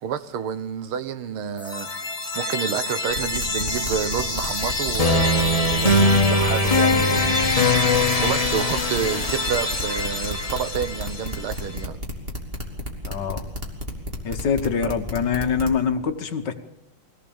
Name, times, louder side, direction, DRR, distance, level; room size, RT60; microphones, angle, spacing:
voice 1, 0.0-1.9 2.3-7.4 8.2-12.0 14.8-14.9, right 8 dB, 75° right, 1.9 m, -29 dB
sound 1, 1.6-11.5, left 2 dB, 20° left, 1.5 m, -22 dB
sound 2, 3.1-15.8, left 1 dB, 25° right, 2.9 m, -31 dB
voice 2, 13.1-13.5 14.2-16.5, left 6 dB, 60° left, 1.6 m, -24 dB
22.0 x 17.0 x 7.1 m
omnidirectional pair, 2.4 m